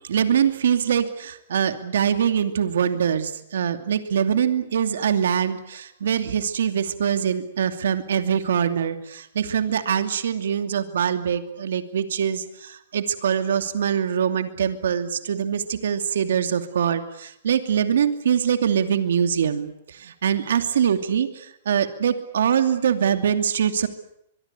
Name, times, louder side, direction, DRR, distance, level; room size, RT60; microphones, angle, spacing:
voice 1, 0.1-19.7 20.0-21.3 21.7-23.9, right 8 dB, 80° right, 9 dB, 2.6 m, -23 dB
23.5 x 23.5 x 8.4 m, 0.74 s
hypercardioid pair, 160°, 0 cm